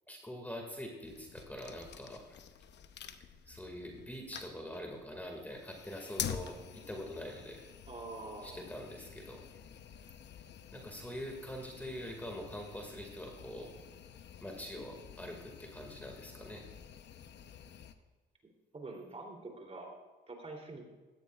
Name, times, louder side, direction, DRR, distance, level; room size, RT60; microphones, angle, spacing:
voice 1, 0.1-2.4 3.5-7.7 8.4-9.5 10.7-13.7 14.4-16.7, equal, 10° left, 1 dB, 2.1 m, -44 dB
sound 1, 1.0-17.9, left 8 dB, 60° left, 0.8 m, -48 dB
voice 2, 7.9-8.7 18.7-19.9 20.3-20.9, right 2 dB, 30° right, 1 dB, 3.1 m, -45 dB
17.5 x 14.0 x 2.4 m, 1.3 s
cardioid pair, 90°, 20 cm